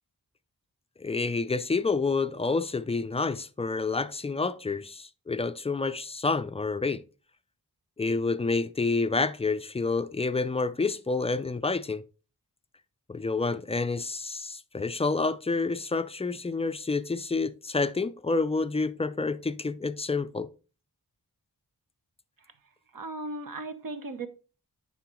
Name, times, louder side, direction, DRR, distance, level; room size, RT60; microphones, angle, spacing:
voice 1, 1.0-7.0 8.0-12.0 13.1-20.5, left 3 dB, 20° left, 0.3 m, -28 dB
voice 2, 22.9-24.3, right 2 dB, 60° right, 0.9 m, -37 dB
9.6 x 3.8 x 3.0 m
wide cardioid pair, 90°, 37 cm